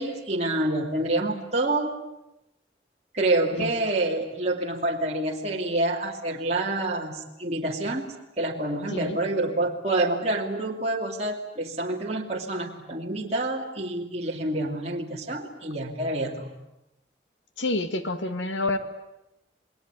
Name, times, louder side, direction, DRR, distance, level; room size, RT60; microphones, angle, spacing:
voice 1, 0.0-1.9 3.1-16.5, right 2 dB, 35° right, -1 dB, 2.7 m, -27 dB
voice 2, 17.6-18.8, left 2 dB, 90° left, 9 dB, 2.2 m, -28 dB
28.0 x 21.0 x 9.8 m, 0.92 s
head